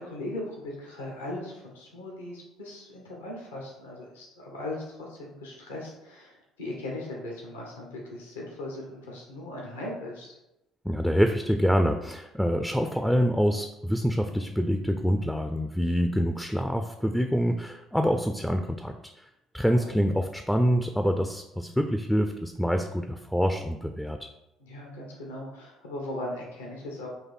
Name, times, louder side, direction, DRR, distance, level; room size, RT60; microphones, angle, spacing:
voice 1, 0.0-10.4 19.9-20.0 24.6-27.1, left 1 dB, 85° left, -2 dB, 0.8 m, -38 dB
voice 2, 10.8-19.2 19.5-24.3, equal, 5° left, 6 dB, 0.3 m, -26 dB
4.1 x 2.6 x 4.1 m, 0.92 s
hypercardioid pair, 55°, 0 cm